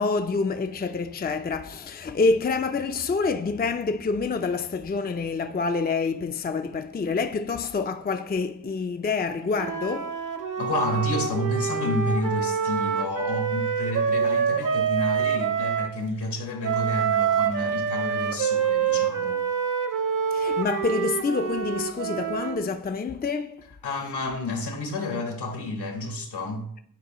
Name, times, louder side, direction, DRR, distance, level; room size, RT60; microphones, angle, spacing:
voice 1, 0.0-10.2 20.3-23.6, left 4 dB, 25° left, 0.5 m, -27 dB
Wind instrument woodwind instrument, 9.5-15.9 16.6-22.7, right 7 dB, 50° right, 1.0 m, -26 dB
voice 2, 10.6-19.4 23.8-26.7, left 1 dB, 75° left, 1.6 m, -30 dB
9.5 x 4.5 x 3.0 m
cardioid pair, 45°, 40 cm